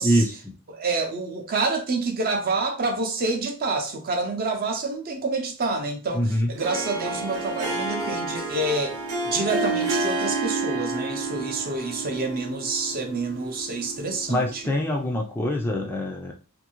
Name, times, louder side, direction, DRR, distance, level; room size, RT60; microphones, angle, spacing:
voice 1, 0.0-0.5 6.1-6.5 14.3-16.3, equal, 10° left, 0.3 m, -24 dB
voice 2, 0.7-9.0 9.2-14.6, right 3 dB, 45° right, 0.6 m, -28 dB
Harp, 6.5-14.8, right 2 dB, 90° right, 0.7 m, -30 dB
2.6 x 2.6 x 2.9 m
head